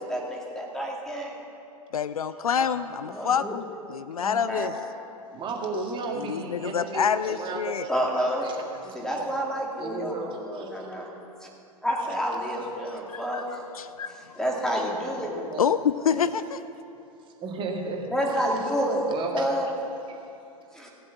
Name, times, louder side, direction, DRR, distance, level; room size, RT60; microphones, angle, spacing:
voice 1, 0.0-1.3 3.1-3.5 4.2-4.7 7.9-8.4 8.9-11.1 11.4-11.5 11.8-13.6 14.4-15.5 18.1-19.7 20.7-20.9, equal, 5° left, -2 dB, 2.2 m, -29 dB
voice 2, 1.9-4.7 6.1-7.9 13.1-13.4 13.7-14.2 15.6-16.6, left 7 dB, 75° left, 14 dB, 0.4 m, -27 dB
voice 3, 5.3-8.6 8.8-9.2 9.8-10.9 12.8-12.9 15.2-15.6 16.1-16.2 17.4-18.4 19.1-19.5, right 4 dB, 25° right, 1 dB, 1.9 m, -34 dB
16.0 x 7.9 x 7.3 m, 2.8 s
figure-of-eight pair, 95°, 19 cm